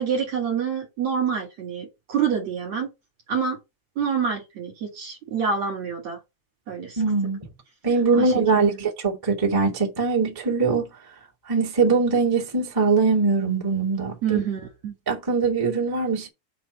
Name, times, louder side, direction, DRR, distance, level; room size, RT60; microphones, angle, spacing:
voice 1, 0.0-2.9 3.3-3.6 4.0-6.2 6.7-7.0 8.1-8.7 14.2-14.9, right 6 dB, 50° right, 2.4 m, -27 dB
voice 2, 7.0-7.5 7.8-10.9 11.5-14.4 15.0-16.3, right 4 dB, 10° right, 1.1 m, -22 dB
5.7 x 4.6 x 6.5 m
omnidirectional pair, 5.0 m